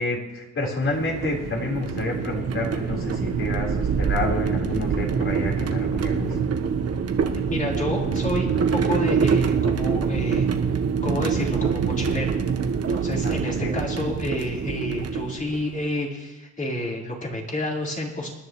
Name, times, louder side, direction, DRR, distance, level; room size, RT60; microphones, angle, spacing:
voice 1, 0.0-6.4 13.2-13.7, left 2 dB, 40° left, -1 dB, 4.3 m, -29 dB
sound 1, 0.8-15.8, right 6 dB, 55° right, 1.4 m, -25 dB
voice 2, 7.5-10.5 11.0-12.3 12.9-18.3, left 1 dB, 25° left, -3 dB, 4.3 m, -29 dB
27.0 x 10.5 x 3.2 m, 1.1 s
cardioid pair, 90°, 30 cm